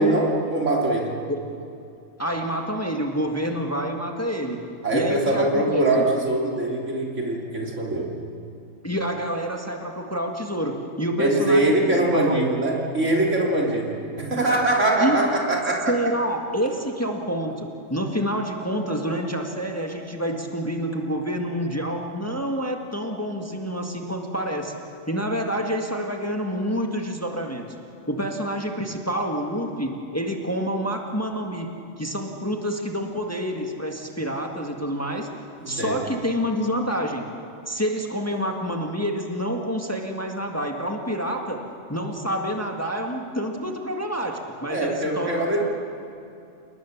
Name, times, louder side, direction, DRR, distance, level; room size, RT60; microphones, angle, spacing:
voice 1, 0.0-1.2 4.8-8.1 11.2-15.9 35.6-36.0 44.7-45.7, right 2 dB, 65° right, -2 dB, 3.7 m, -22 dB
voice 2, 2.2-4.6 4.9-5.9 8.8-12.4 15.0-15.2 15.9-24.7 25.1-27.6 28.1-35.3 35.7-37.3 37.7-41.6 41.9-45.7, equal, 10° left, 2 dB, 1.7 m, -28 dB
29.0 x 19.5 x 7.3 m, 2.5 s
omnidirectional pair, 1.3 m